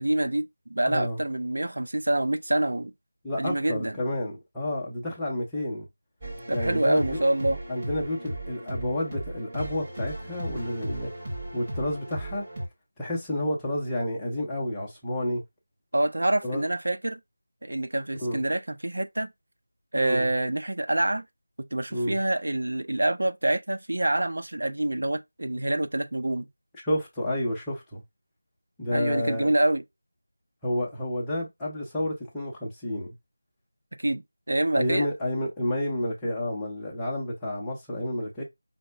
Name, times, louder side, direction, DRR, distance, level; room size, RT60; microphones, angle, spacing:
voice 1, 0.0-2.9 3.4-3.9 6.5-7.6 15.9-17.2 17.6-19.3 19.9-21.3 21.7-26.5 28.9-29.8 34.0-34.2 34.5-35.1, right 1 dB, 70° right, 0.6 m, -26 dB
voice 2, 0.8-1.2 3.2-5.9 6.5-7.2 7.7-11.1 11.5-12.4 13.0-15.4 16.4-16.6 18.2-18.4 19.9-20.3 21.9-22.2 26.8-28.0 28.8-29.5 30.6-33.1 34.8-38.4, left 1 dB, 5° left, 0.6 m, -30 dB
sound 1, 6.2-12.7, right 1 dB, 20° right, 1.0 m, -36 dB
5.2 x 2.1 x 3.3 m
figure-of-eight pair, 175°, 0 cm